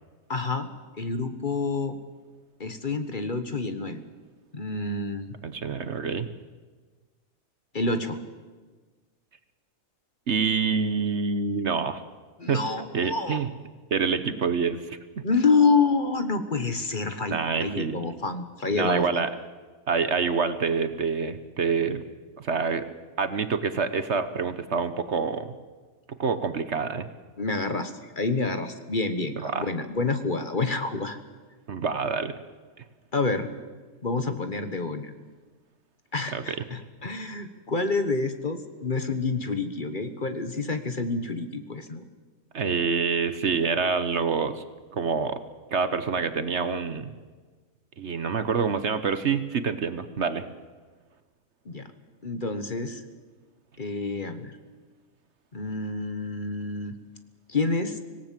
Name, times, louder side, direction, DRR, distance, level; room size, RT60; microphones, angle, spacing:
voice 1, 0.3-0.7 1.0-1.9 2.6-4.0 4.5-5.3 7.7-8.2 12.4-13.4 14.3-14.4 15.2-19.2 27.4-31.2 33.1-33.5 34.0-35.1 36.1-42.0 51.6-51.9 52.2-53.0 53.8-54.5 55.5-56.9 57.5-58.0, left 3 dB, 35° left, 9 dB, 1.3 m, -28 dB
voice 2, 5.4-6.3 10.3-12.0 12.5-12.6 12.9-13.5 13.9-15.0 17.3-17.9 18.8-19.3 19.9-22.0 22.4-22.8 23.2-25.5 26.2-27.1 29.4-29.7 31.7-32.4 36.3-36.6 42.5-44.6 44.9-45.4 45.7-47.1 48.0-50.5, right 5 dB, 55° right, 11 dB, 1.2 m, -26 dB
25.5 x 18.0 x 7.6 m, 1.4 s
omnidirectional pair, 1.5 m